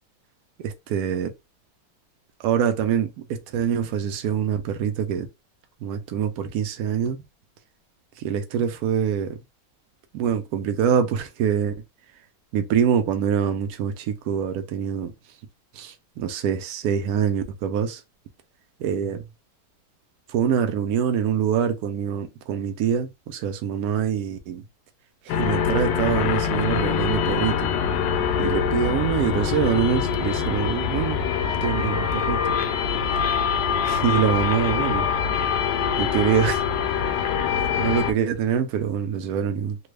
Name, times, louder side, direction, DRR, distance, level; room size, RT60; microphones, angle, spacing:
voice 1, 0.6-1.3 2.4-5.3 5.8-7.2 8.2-9.4 10.1-11.7 12.5-15.1 15.7-18.0 18.8-19.2 20.3-24.6 25.2-27.6 28.4-31.2 31.6-32.6 33.9-35.1 36.0-36.6 37.8-39.8, right 8 dB, 80° right, 0.8 m, -25 dB
sound 1, 25.3-38.1, left 7 dB, 75° left, 1.1 m, -24 dB
3.4 x 2.2 x 3.2 m
omnidirectional pair, 2.2 m